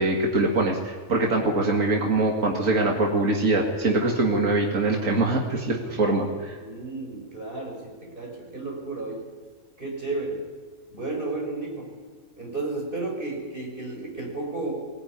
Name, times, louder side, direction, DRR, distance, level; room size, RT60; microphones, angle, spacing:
voice 1, 0.0-6.6, right 2 dB, 75° right, 0 dB, 2.6 m, -23 dB
voice 2, 6.5-9.3 9.8-10.4 10.9-11.9 12.4-14.7, right 2 dB, 40° right, 0 dB, 5.8 m, -33 dB
20.0 x 19.0 x 9.6 m, 1.5 s
omnidirectional pair, 1.4 m